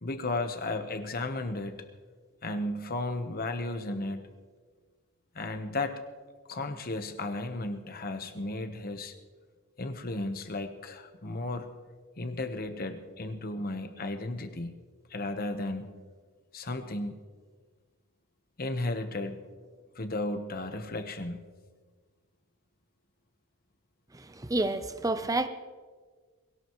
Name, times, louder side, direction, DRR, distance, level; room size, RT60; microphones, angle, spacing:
voice 1, 0.0-1.8 2.4-4.3 5.3-6.0 6.5-9.1 9.8-11.7 12.2-14.7 15.1-15.9 16.5-17.2 18.6-19.4 19.9-21.4, left 2 dB, 40° left, 8 dB, 1.1 m, -34 dB
voice 2, 24.1-25.5, right 2 dB, 15° right, 11 dB, 0.6 m, -29 dB
22.0 x 17.0 x 3.1 m, 1.5 s
head